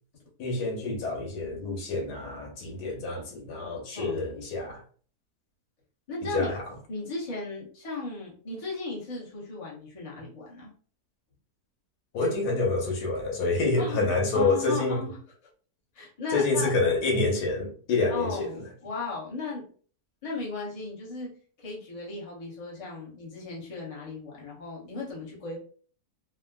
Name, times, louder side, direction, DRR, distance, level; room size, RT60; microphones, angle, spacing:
voice 1, 0.4-4.8 6.3-6.6 12.1-15.0 16.3-18.5, left 3 dB, 85° left, 1.4 m, -27 dB
voice 2, 3.9-4.3 6.1-6.5 6.9-10.7 13.8-15.5 15.9-16.7 18.1-19.7 20.2-21.3 21.6-25.6, left 3 dB, 25° left, 0.9 m, -36 dB
3.6 x 2.1 x 2.2 m
omnidirectional pair, 1.7 m